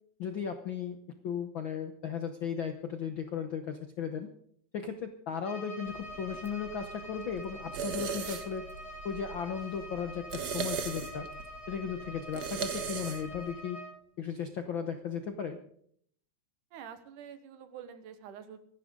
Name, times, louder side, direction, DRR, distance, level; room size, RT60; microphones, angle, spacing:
voice 1, 0.2-1.0 1.2-4.3 4.7-8.7 9.0-11.3 11.7-13.8 14.2-15.6, left 7 dB, 70° left, 7 dB, 1.1 m, -36 dB
Bowed string instrument, 5.4-14.0, equal, 50° left, 6.8 m, -45 dB
sound 1, 5.9-13.5, right 6 dB, 65° right, 1.0 m, -40 dB
voice 2, 16.7-18.6, right 8 dB, 85° right, 10 dB, 2.8 m, -47 dB
25.0 x 11.5 x 3.8 m, 0.63 s
omnidirectional pair, 3.6 m